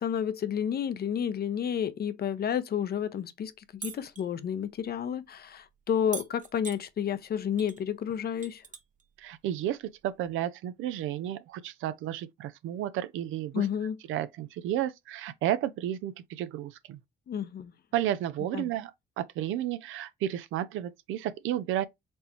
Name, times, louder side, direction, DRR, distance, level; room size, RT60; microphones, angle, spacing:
voice 1, 0.0-8.6 13.5-14.0 17.3-17.7 18.5-18.7, left 8 dB, 50° left, 0.7 m, -31 dB
sound 1, 3.8-4.3 6.1-6.8 7.6-7.8 8.1-9.0 10.3-10.4, right 7 dB, 40° right, 0.8 m, -41 dB
voice 2, 9.2-9.8 10.0-13.7 14.1-17.0 17.9-18.9 19.2-21.9, right 12 dB, 90° right, 0.5 m, -32 dB
4.3 x 3.4 x 3.0 m
cardioid pair, 90°, 20 cm